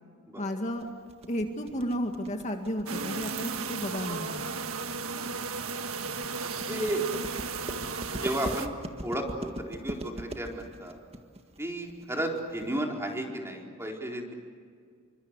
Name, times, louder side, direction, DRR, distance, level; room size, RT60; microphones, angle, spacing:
voice 1, 0.4-0.9 1.3-4.4, equal, 35° left, 3 dB, 2.1 m, -32 dB
sound 1, 0.8-12.8, right 1 dB, 30° right, 1.8 m, -41 dB
sound 2, 2.9-8.7, right 4 dB, 70° right, 1.7 m, -35 dB
voice 2, 6.4-7.0 8.1-11.0 11.6-14.3, right 1 dB, 10° right, 0 dB, 4.3 m, -33 dB
28.5 x 25.5 x 8.2 m, 2.1 s
head